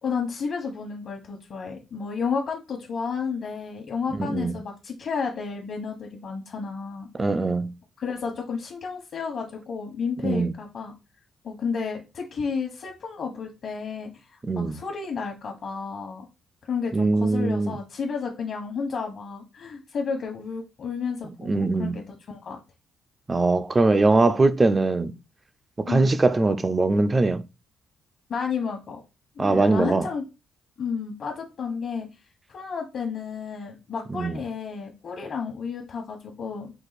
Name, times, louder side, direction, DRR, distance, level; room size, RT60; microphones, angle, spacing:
voice 1, 0.0-7.1 8.0-10.9 11.4-16.2 16.7-22.6 25.9-26.1 28.3-29.0 29.3-30.2 30.8-32.1 32.5-36.7, left 5 dB, 55° left, 1.2 m, -32 dB
voice 2, 4.2-4.5 7.2-7.7 10.2-10.5 14.4-14.8 16.9-17.8 21.4-22.0 23.3-25.1 25.9-27.4 29.4-30.1 34.1-34.4, right 3 dB, 25° right, 0.5 m, -21 dB
4.8 x 2.4 x 4.1 m
cardioid pair, 90°, 0 cm